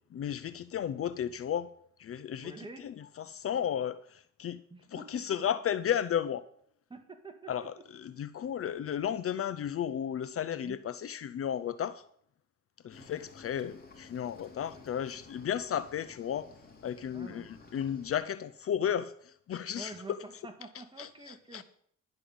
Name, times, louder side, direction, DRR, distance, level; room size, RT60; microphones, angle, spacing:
voice 1, 0.1-1.7 2.0-4.6 4.9-6.4 7.5-12.0 12.8-16.5 16.8-20.2 21.0-21.6, left 9 dB, 50° left, 0.6 m, -34 dB
voice 2, 2.4-2.8 4.7-5.4 6.9-7.9 10.6-10.8 12.9-13.2 14.7-14.8 17.1-17.5 19.8-21.6, right 2 dB, 15° right, 1.9 m, -48 dB
Cricket / Waves surf, 12.9-18.2, left 4 dB, 30° left, 3.6 m, -54 dB
11.5 x 5.6 x 7.7 m
cardioid pair, 90°, 30 cm